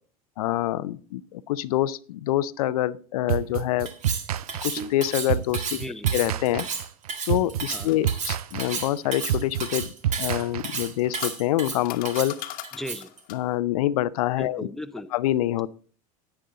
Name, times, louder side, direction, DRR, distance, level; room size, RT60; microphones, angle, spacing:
voice 1, 0.4-3.9 4.6-5.8 6.1-6.7 7.3-9.9 10.2-12.3 13.3-14.7 15.1-15.7, left 14 dB, 80° left, 16 dB, 0.5 m, -26 dB
sound 1, 3.3-11.1, right 10 dB, 90° right, 0.4 m, -29 dB
Cutlery silverware, 3.9-13.2, right 5 dB, 40° right, 1.9 m, -33 dB
voice 2, 5.7-6.1 7.7-7.9 12.7-13.1 14.4-15.1, left 1 dB, ahead, 10 dB, 0.6 m, -36 dB
sound 2, 7.4-9.7 10.7-13.5, left 14 dB, 50° left, 1.1 m, -41 dB
10.0 x 9.0 x 3.8 m, 0.41 s
hypercardioid pair, 95°, 19 cm